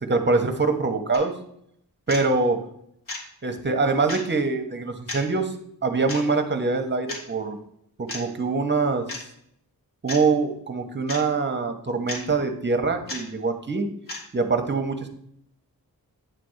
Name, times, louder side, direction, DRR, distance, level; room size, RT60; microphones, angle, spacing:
voice 1, 0.0-1.3 2.1-2.6 3.4-5.5 5.8-7.6 8.0-9.1 10.0-13.9 14.3-15.1, right 3 dB, 30° right, 6 dB, 1.0 m, -24 dB
sound 1, 1.1-1.3 2.1-2.3 3.1-3.2 4.1-4.2 5.1-5.2 6.1-6.2 7.1-7.2 8.1-8.2 9.1-9.2 10.1-10.3 11.1-11.2 12.1-12.3 13.1-13.2 14.1-14.3, left 2 dB, 60° left, 1.9 m, -33 dB
9.1 x 3.4 x 6.4 m, 0.71 s
wide cardioid pair, 130°, 37 cm